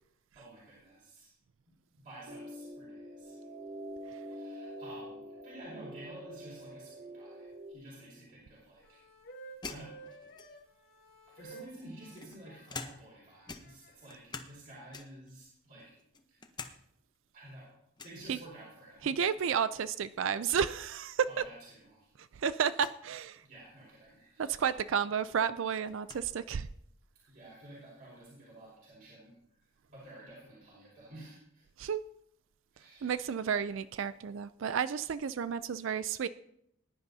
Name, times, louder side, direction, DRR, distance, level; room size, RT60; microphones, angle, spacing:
voice 1, 0.3-1.3 2.0-3.5 4.3-9.0 9.7-9.9 11.3-15.9 16.3-16.4 17.3-17.7 18.0-19.1 21.2-22.1 23.4-24.5 27.2-31.6 32.7-33.3, right 1 dB, 45° right, -6 dB, 4.8 m, -51 dB
sound 1, 2.3-7.7, right 1 dB, 90° right, 2.4 m, -45 dB
sound 2, 8.8-12.7 13.4-14.0, right 3 dB, 50° left, 1.5 m, -52 dB
sound 3, 9.6-10.8 11.6-13.2 13.5-14.6 14.9-15.3 15.8-16.8 17.1-17.2 18.0-18.2 19.7-20.0 20.3-20.4 20.5-20.7 21.5-21.6 22.7-23.0 24.7-24.8 25.1-26.3, left 4 dB, 20° left, 0.7 m, -46 dB
voice 2, 19.0-21.3 22.2-23.4 24.4-26.7 31.8-32.0 33.0-36.3, right 7 dB, 65° right, 14 dB, 0.4 m, -32 dB
20.0 x 10.5 x 2.7 m, 0.77 s
head